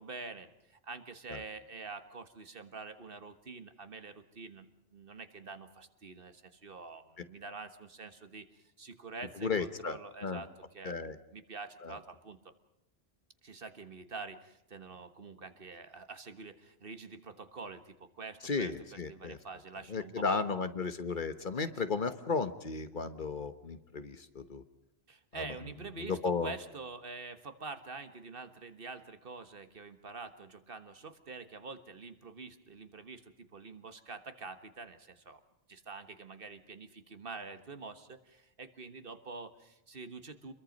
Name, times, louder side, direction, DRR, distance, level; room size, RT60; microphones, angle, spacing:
voice 1, 0.0-4.7 4.9-11.0 11.3-12.5 13.4-20.5 21.6-21.7 25.1-35.4 35.7-40.5, right 4 dB, 60° right, 9 dB, 1.7 m, -46 dB
voice 2, 9.4-10.4 10.8-11.1 11.8-11.9 18.4-19.4 19.9-24.6 25.4-25.5 26.0-26.5, left 4 dB, 50° left, 11 dB, 1.3 m, -34 dB
28.0 x 22.5 x 5.3 m, 0.85 s
omnidirectional pair, 1.1 m